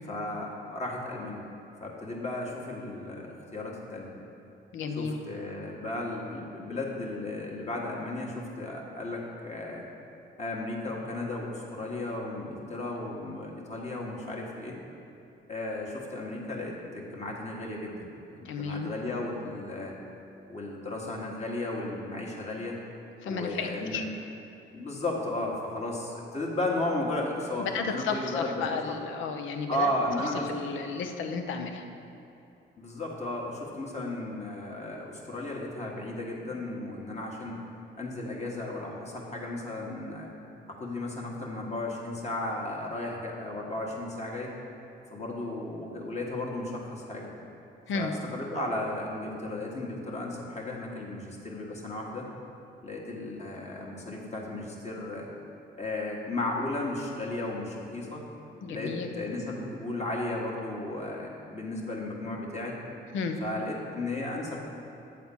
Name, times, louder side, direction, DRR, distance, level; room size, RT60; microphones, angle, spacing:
voice 1, 0.1-1.4 1.8-4.1 5.0-9.8 10.4-14.7 15.5-18.0 18.4-19.9 20.5-22.8 23.2-24.0 24.7-28.9 29.7-30.5 32.8-37.6 38.0-40.3 40.7-44.5 45.1-47.3 47.9-52.3 52.8-55.3 55.7-58.2 58.7-62.8 63.4-64.7, left 2 dB, 35° left, -2 dB, 1.6 m, -34 dB
voice 2, 4.7-5.2 18.4-19.0 23.2-24.0 27.6-29.9 30.5-31.8 47.9-48.1 58.6-59.1 63.1-63.4, left 5 dB, 75° left, 6 dB, 0.7 m, -33 dB
8.3 x 4.2 x 7.0 m, 2.8 s
cardioid pair, 90°, 20 cm